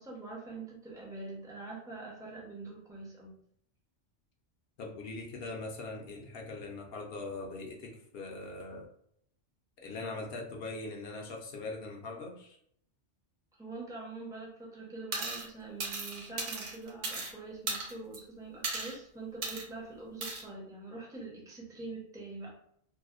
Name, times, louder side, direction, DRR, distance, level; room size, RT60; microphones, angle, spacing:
voice 1, 0.0-3.4 13.6-22.5, right 3 dB, 5° right, -4 dB, 0.4 m, -44 dB
voice 2, 4.8-8.9 9.8-12.6, left 3 dB, 65° left, 1 dB, 0.7 m, -41 dB
sound 1, 15.1-15.5 15.8-17.3 17.7-18.2 18.6-19.0 19.4-19.7 20.2-20.4, right 3 dB, 80° right, 1.0 m, -36 dB
2.6 x 2.0 x 2.3 m, 0.69 s
omnidirectional pair, 1.2 m